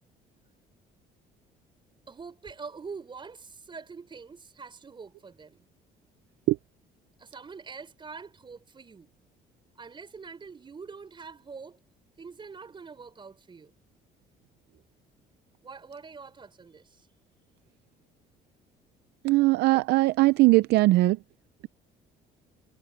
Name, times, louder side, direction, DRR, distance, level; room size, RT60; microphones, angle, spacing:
voice 1, 2.1-5.6 7.2-9.1 9.8-11.8 12.2-13.7 15.6-17.1, right 5 dB, 30° right, 5.0 m, -44 dB
voice 2, 19.2-21.2, right 19 dB, 80° right, 0.5 m, -20 dB
cardioid pair, 110°, 17 cm